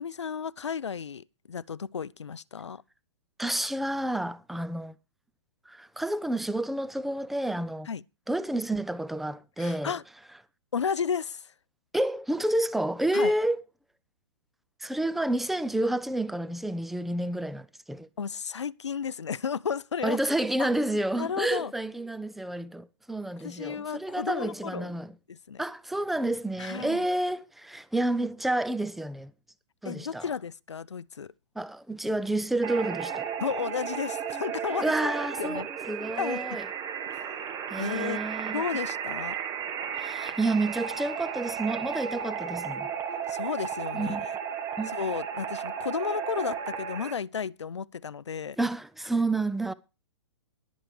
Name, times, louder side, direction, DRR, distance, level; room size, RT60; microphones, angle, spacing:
voice 1, 0.0-2.8 7.9-8.0 9.6-10.0 10.7-11.5 13.1-13.3 18.2-20.2 20.6-20.7 21.2-21.7 23.4-24.9 25.3-25.6 26.6-27.0 29.8-31.3 33.4-35.1 35.4-35.7 36.2-36.4 37.8-38.2 38.5-39.4 43.3-44.4 44.9-48.6, left 6 dB, 80° left, 0.6 m, -33 dB
voice 2, 3.4-4.9 5.7-7.9 8.3-9.9 11.9-13.6 14.8-18.1 20.0-25.1 25.6-29.3 29.8-30.2 31.6-33.3 34.8-36.7 37.7-38.6 40.0-42.9 43.9-44.3 44.8-44.9 48.6-49.7, right 1 dB, ahead, 0.5 m, -29 dB
sound 1, 32.6-47.1, right 8 dB, 25° right, 1.4 m, -34 dB
12.0 x 8.9 x 4.8 m
figure-of-eight pair, 115°, 15 cm